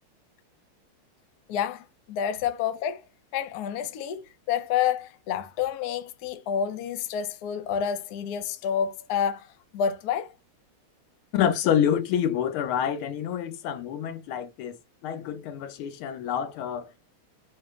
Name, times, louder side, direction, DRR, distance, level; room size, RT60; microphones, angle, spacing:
voice 1, 1.5-3.0 3.3-9.5 9.7-10.4, left 8 dB, 70° left, 1.0 m, -29 dB
voice 2, 11.3-17.0, left 9 dB, 85° left, 1.6 m, -27 dB
5.1 x 2.0 x 3.4 m
omnidirectional pair, 2.3 m